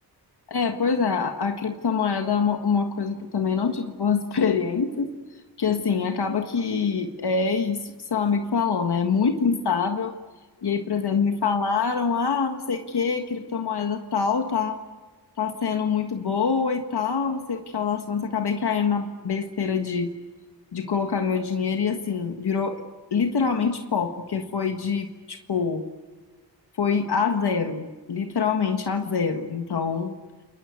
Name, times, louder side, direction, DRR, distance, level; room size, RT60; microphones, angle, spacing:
voice 1, 0.5-5.1 5.6-10.1 10.6-14.8 15.4-20.1 20.7-22.8 23.1-25.8 26.8-30.1, left 5 dB, 65° left, 5 dB, 1.7 m, -25 dB
30.0 x 22.0 x 8.3 m, 1.3 s
cardioid pair, 70°, 41 cm